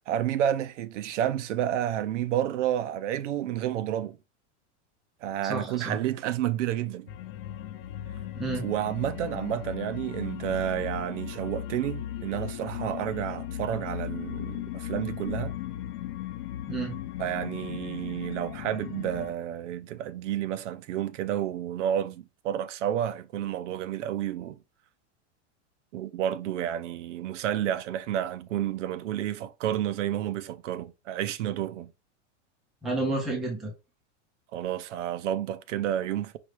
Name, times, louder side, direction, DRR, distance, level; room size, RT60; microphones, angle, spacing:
voice 1, 0.1-4.2 5.2-7.1 8.6-15.5 17.2-24.6 25.9-31.9 34.5-36.4, right 11 dB, 85° right, 0.7 m, -30 dB
voice 2, 5.5-6.0 8.3-8.7 16.7-17.0 32.8-33.7, right 2 dB, ahead, 0.3 m, -30 dB
sound 1, 7.1-19.3, left 11 dB, 50° left, 0.6 m, -37 dB
5.1 x 3.1 x 3.1 m
supercardioid pair, 170°, 36 cm